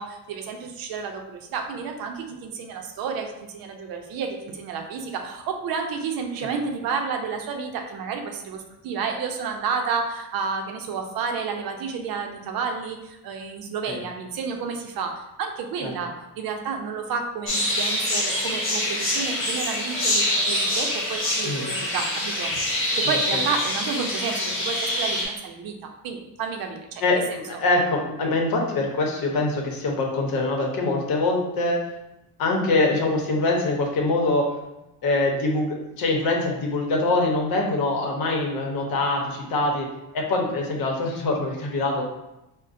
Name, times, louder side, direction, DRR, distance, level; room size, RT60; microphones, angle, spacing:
voice 1, 0.0-22.5 23.0-25.8 26.0-27.0, right 5 dB, 60° right, 4 dB, 0.6 m, -31 dB
sound 1, 17.5-25.2, left 1 dB, 30° left, 1.2 m, -25 dB
voice 2, 23.0-23.4 27.0-27.2 27.5-31.8 32.4-34.5 35.0-39.9 40.1-42.0, left 2 dB, 60° left, 0 dB, 0.8 m, -24 dB
5.1 x 2.1 x 2.5 m, 0.93 s
cardioid pair, 130°, 39 cm